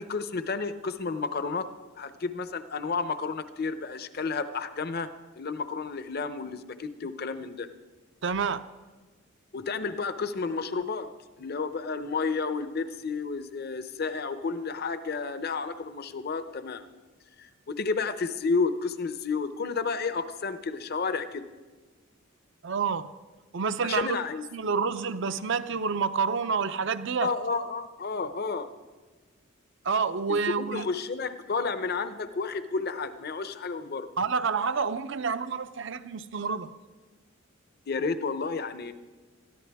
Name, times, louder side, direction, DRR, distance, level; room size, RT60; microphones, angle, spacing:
voice 1, 0.0-1.7 2.0-5.1 5.3-7.7 9.5-11.1 11.4-16.8 17.4-21.4 23.8-24.4 27.2-28.7 30.3-34.1 37.9-38.9, left 4 dB, 45° left, 0.7 m, -31 dB
voice 2, 8.2-8.6 22.6-23.1 23.5-24.2 24.5-27.3 29.8-30.8 34.2-36.7, right 5 dB, 55° right, 0.5 m, -28 dB
20.0 x 14.0 x 3.5 m
head